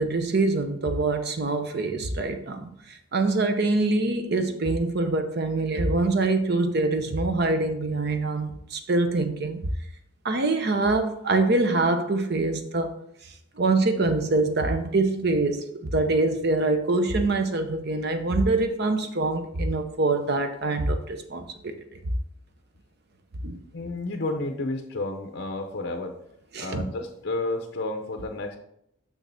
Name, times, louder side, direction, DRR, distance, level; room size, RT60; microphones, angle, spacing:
voice 1, 0.0-9.7 10.2-13.0 13.6-21.8 23.4-23.6 26.5-26.8, right 2 dB, 55° right, 0.7 m, -24 dB
voice 2, 23.7-26.2 26.6-28.6, left 2 dB, 55° left, 0.7 m, -31 dB
6.4 x 6.3 x 3.4 m
head